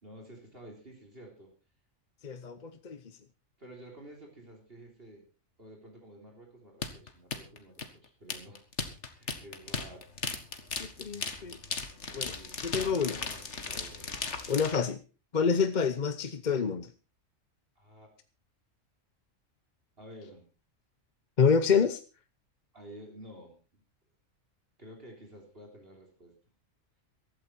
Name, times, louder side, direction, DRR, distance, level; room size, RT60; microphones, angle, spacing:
voice 1, 0.0-1.5 3.6-5.3 5.6-8.7 9.2-10.0 12.1-14.1 17.8-18.1 20.0-20.5 22.7-23.8 24.8-26.4, right 1 dB, 45° right, 1 dB, 3.8 m, -51 dB
voice 2, 2.2-3.0 10.8-11.6 12.2-12.3 12.6-13.2 14.5-15.0 15.3-16.9 21.4-22.0, left 6 dB, 40° left, 11 dB, 0.9 m, -27 dB
sound 1, 6.8-14.8, left 4 dB, 60° left, 2.0 m, -36 dB
15.5 x 13.0 x 4.5 m, 0.34 s
omnidirectional pair, 1.4 m